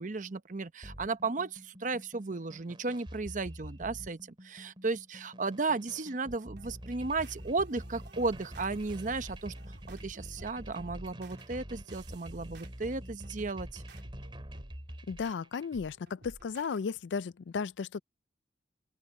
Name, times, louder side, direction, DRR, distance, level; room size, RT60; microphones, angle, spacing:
voice 1, 0.0-9.5 9.9-13.8, right 3 dB, 45° right, 0.8 m, -34 dB
sound 1, 0.8-15.8, equal, 30° right, 3.6 m, -47 dB
sound 2, 6.5-16.8, right 1 dB, 70° right, 3.5 m, -54 dB
voice 2, 15.1-18.0, left 5 dB, 90° left, 0.4 m, -35 dB
open air
head